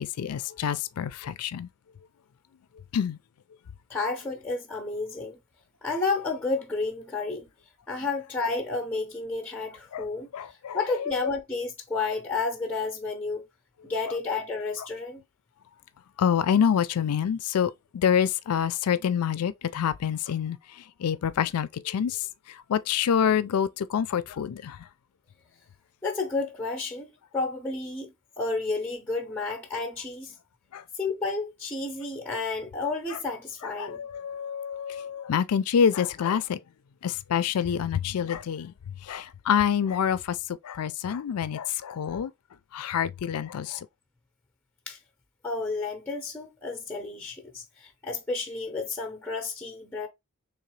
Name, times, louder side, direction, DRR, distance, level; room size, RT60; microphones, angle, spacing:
voice 1, 0.0-1.7 2.9-3.2 9.9-10.1 10.3-11.1 16.2-20.6 21.0-24.8 30.7-30.8 33.6-36.6 37.0-38.7 39.0-40.4 40.6-42.3 42.7-43.9, left 8 dB, 85° left, 0.4 m, -27 dB
voice 2, 3.9-5.4 5.8-7.5 7.9-13.5 13.8-15.2 26.0-30.3 31.0-34.0 44.9-45.0 45.4-50.1, left 3 dB, 10° left, 0.6 m, -31 dB
3.8 x 3.0 x 3.1 m
head